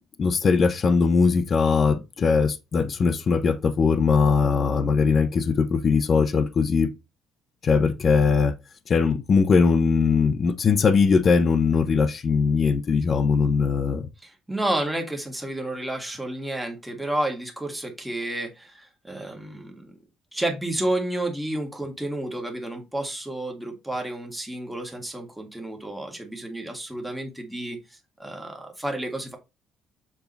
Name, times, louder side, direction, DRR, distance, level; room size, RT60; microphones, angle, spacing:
voice 1, 0.2-6.9 7.6-8.5 8.9-14.1, left 5 dB, 35° left, 0.8 m, -20 dB
voice 2, 14.2-19.9 20.3-29.4, right 1 dB, 5° right, 1.8 m, -31 dB
7.1 x 3.7 x 4.0 m
cardioid pair, 135°, 0 cm